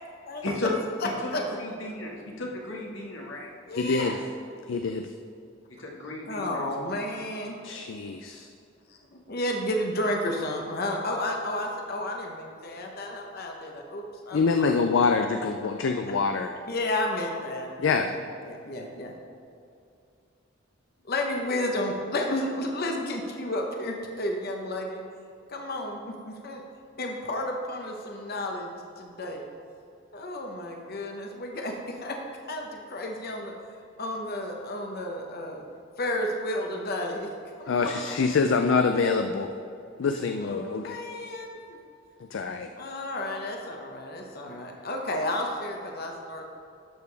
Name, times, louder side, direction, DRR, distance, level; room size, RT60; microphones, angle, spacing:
voice 1, 0.2-0.7 1.0-1.4 3.7-4.2 6.3-7.6 8.9-14.8 16.1-16.2 16.7-18.1 18.4-19.1 21.0-25.0 25.5-26.6 27.0-29.4 30.1-32.2 32.5-33.5 34.0-35.6 36.0-37.3 37.6-38.1 40.4-41.8 42.8-46.4, left 1 dB, 55° left, 2 dB, 0.9 m, -32 dB
voice 2, 1.6-3.5 4.0-4.2 5.8-6.7, left 2 dB, 85° left, -1 dB, 1.6 m, -34 dB
voice 3, 3.8-4.2 4.7-5.1 7.6-8.5 14.3-16.5 17.8-18.1 37.7-39.5 40.0-41.0 42.3-42.7, left 4 dB, 70° left, 6 dB, 0.4 m, -25 dB
11.5 x 6.9 x 3.4 m, 2.6 s
head